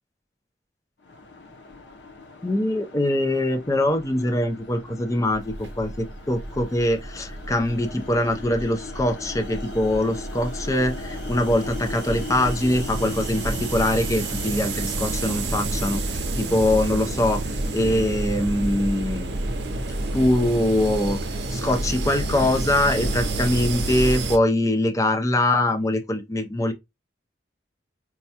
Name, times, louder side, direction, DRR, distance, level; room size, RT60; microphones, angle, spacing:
sound 1, 1.0-18.5, left 3 dB, 80° left, 0.7 m, -40 dB
voice 1, 2.4-19.6 20.1-21.2 21.5-26.7, left 1 dB, 20° left, 0.5 m, -23 dB
sound 2, 5.3-24.4, right 2 dB, 75° right, 0.6 m, -30 dB
4.6 x 2.2 x 2.7 m
head